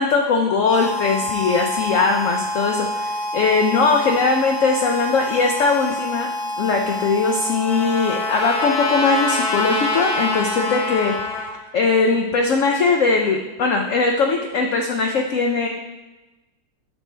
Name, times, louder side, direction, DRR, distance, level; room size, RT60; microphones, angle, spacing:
voice 1, 0.0-6.3 6.6-11.4 11.7-15.7, left 4 dB, 80° left, 2 dB, 0.7 m, -20 dB
Harmonica, 0.6-11.6, left 1 dB, 40° left, 3.3 m, -28 dB
Trumpet, 6.9-11.5, left 3 dB, 60° left, 1.7 m, -26 dB
8.3 x 6.1 x 3.3 m, 1.1 s
omnidirectional pair, 2.0 m